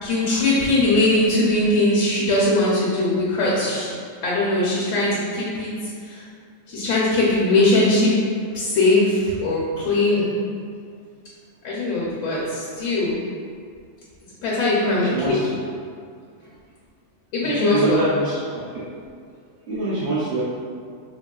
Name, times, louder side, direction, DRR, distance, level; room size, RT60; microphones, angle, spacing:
voice 1, 0.0-3.9 4.2-5.7 6.1-6.2 6.7-8.1 8.5-10.4 11.6-13.2 14.4-15.4 17.3-18.0, left 2 dB, 75° left, -6 dB, 0.9 m, -20 dB
voice 2, 14.8-15.6 17.4-18.9 19.7-20.4, right 2 dB, 60° right, -8 dB, 0.7 m, -24 dB
3.0 x 2.8 x 2.2 m, 2.2 s
omnidirectional pair, 1.4 m